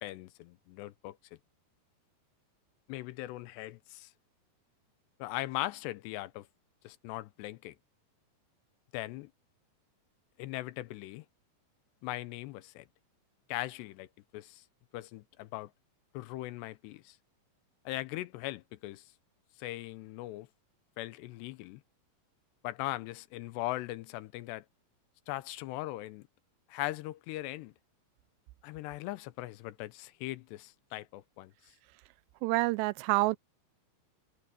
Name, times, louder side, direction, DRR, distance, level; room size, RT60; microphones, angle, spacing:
voice 1, 0.0-1.2 2.9-4.1 5.2-6.5 6.8-7.8 8.9-9.3 10.4-11.3 12.0-12.9 13.5-14.1 14.3-14.6 14.9-15.7 16.1-17.2 17.9-19.0 19.6-20.5 21.0-21.8 22.6-24.7 25.3-26.3 26.7-27.7 28.6-31.5, left 17 dB, 85° left, 2.9 m, -39 dB
voice 2, 32.4-33.4, right 20 dB, 85° right, 2.8 m, -27 dB
omnidirectional pair, 4.9 m